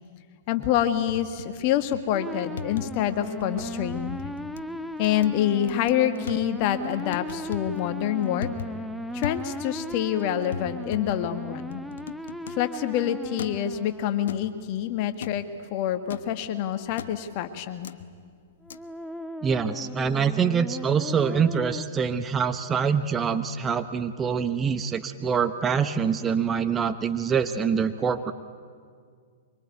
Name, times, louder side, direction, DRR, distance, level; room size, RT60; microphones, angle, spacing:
voice 1, 0.5-4.2 5.0-8.5 9.1-11.8 12.6-15.4 15.7-17.9, left 11 dB, 45° left, 9 dB, 1.8 m, -26 dB
sound 1, 0.7-1.6 1.9-2.2 2.6-3.1 3.4-3.7 4.1-4.6 5.0-5.4 5.7-6.4 7.1-7.8 8.2-8.9 9.2-9.8 10.1-10.2 10.5-12.7 13.4-13.7 14.3-14.7 15.2-15.5 16.1-16.3 17.0-17.3 17.8-18.0 18.7-18.8, left 6 dB, 65° left, 1.0 m, -39 dB
sound 2, 2.1-14.5 18.6-21.8, equal, ahead, 1.1 m, -37 dB
voice 2, 19.4-28.3, right 6 dB, 20° right, 10 dB, 1.0 m, -25 dB
24.5 x 23.5 x 9.4 m, 2.1 s
figure-of-eight pair, 110°, 0 cm